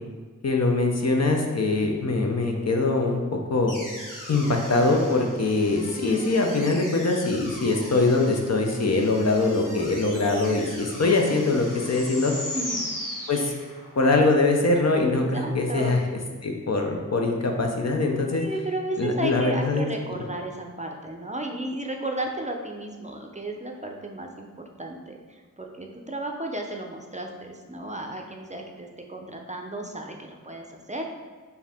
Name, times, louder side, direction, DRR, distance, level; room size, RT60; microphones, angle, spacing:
voice 1, 0.4-3.8 4.3-12.3 13.3-13.5 14.0-16.0 16.4-18.4 19.0-19.9, left 3 dB, 55° left, 2 dB, 0.7 m, -23 dB
sound 1, 3.7-14.0, left 1 dB, 75° left, 1.2 m, -38 dB
voice 2, 12.5-12.9 14.7-14.8 15.3-16.0 18.3-24.5 24.8-31.0, right 1 dB, 25° right, 2 dB, 0.5 m, -34 dB
4.5 x 2.7 x 3.5 m, 1.5 s
wide cardioid pair, 50°, 32 cm